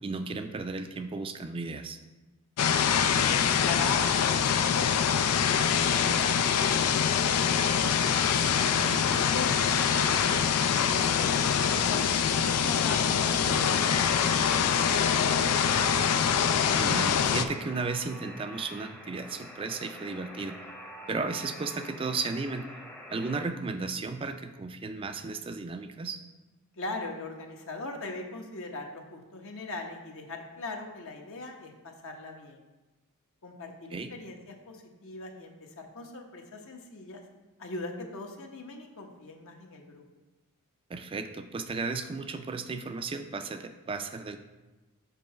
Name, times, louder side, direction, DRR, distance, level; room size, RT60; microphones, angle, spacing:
voice 1, 0.0-2.0 8.6-9.0 16.7-20.6 21.1-22.7 23.1-26.2 33.9-34.1 40.9-44.4, right 4 dB, 25° right, 8 dB, 0.3 m, -34 dB
sound 1, 2.6-17.5, left 7 dB, 90° left, 0.5 m, -25 dB
voice 2, 2.9-4.9 5.2-7.7 8.0-8.2 9.1-16.0 26.8-32.6 33.4-37.2 37.6-40.0, left 3 dB, 65° left, 2 dB, 1.0 m, -40 dB
Alarm, 7.6-23.5, equal, 5° left, 0.7 m, -46 dB
5.4 x 4.6 x 6.3 m, 1.1 s
head